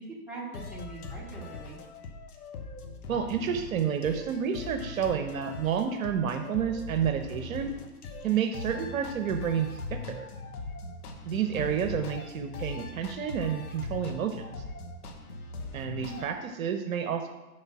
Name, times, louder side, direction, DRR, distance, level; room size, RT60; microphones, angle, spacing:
voice 1, 0.0-1.8 11.5-11.7 15.9-16.3, right 4 dB, 5° right, -5 dB, 1.7 m, -42 dB
sound 1, 0.5-16.3, left 3 dB, 75° left, 1.2 m, -41 dB
voice 2, 3.1-7.7 8.2-10.3 11.2-14.5 15.7-17.3, right 8 dB, 60° right, 6 dB, 0.9 m, -30 dB
6.5 x 4.9 x 5.8 m, 1.1 s
hypercardioid pair, 125°, 45 cm